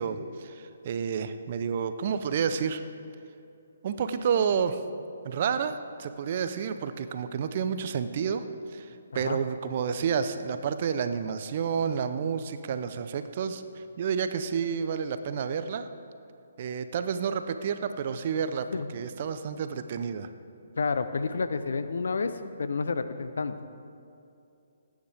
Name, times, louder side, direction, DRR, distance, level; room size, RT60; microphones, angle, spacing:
voice 1, 0.0-2.8 3.8-4.8 5.2-8.4 8.7-8.9 9.1-15.9 16.6-18.7 18.9-20.3, right 7 dB, 45° right, 10 dB, 0.7 m, -30 dB
voice 2, 20.8-22.3 22.6-23.5, left 4 dB, 70° left, 11 dB, 0.7 m, -29 dB
19.0 x 9.6 x 3.5 m, 2.6 s
figure-of-eight pair, 140°, 0 cm